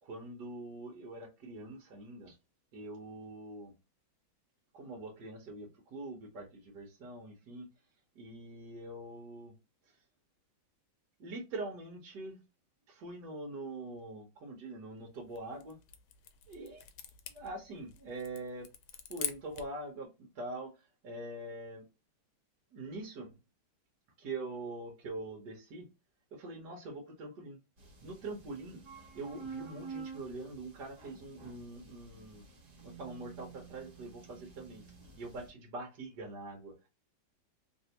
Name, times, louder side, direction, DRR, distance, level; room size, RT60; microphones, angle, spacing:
voice 1, 0.0-2.4 2.7-3.7 4.7-7.7 8.1-9.5 11.2-12.4 12.9-15.8 16.5-16.8 17.3-18.7 19.1-20.7 21.0-21.8 22.7-23.3 24.2-25.9 26.3-27.6 28.0-28.8 29.1-32.4 32.8-34.8 35.1-36.7, right 2 dB, 60° right, 1.5 m, -43 dB
sound 1, 15.1-19.8, left 9 dB, 80° left, 1.3 m, -45 dB
sound 2, 27.8-35.5, right 5 dB, 45° right, 1.5 m, -50 dB
3.4 x 2.6 x 2.8 m
omnidirectional pair, 2.2 m